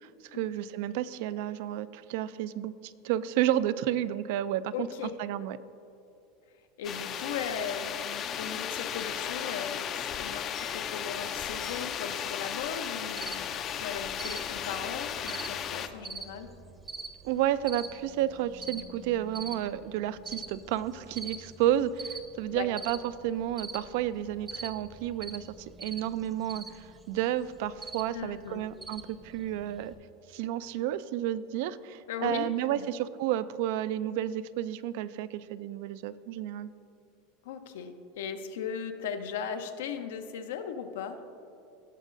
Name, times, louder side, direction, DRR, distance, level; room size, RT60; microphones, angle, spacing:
voice 1, 0.3-4.9 5.2-5.6 17.2-29.9 30.3-36.7, right 12 dB, 65° right, 16 dB, 0.3 m, -31 dB
voice 2, 4.7-5.5 6.8-13.5 13.8-16.5 22.5-22.7 28.1-28.6 32.1-32.9 37.4-41.2, left 7 dB, 90° left, 7 dB, 0.7 m, -38 dB
sound 1, 6.8-15.9, left 9 dB, 35° left, 0.4 m, -35 dB
Cricket, 13.2-29.9, right 3 dB, 15° right, 0.7 m, -45 dB
17.0 x 6.4 x 2.6 m, 2.6 s
supercardioid pair, 150°, 0 cm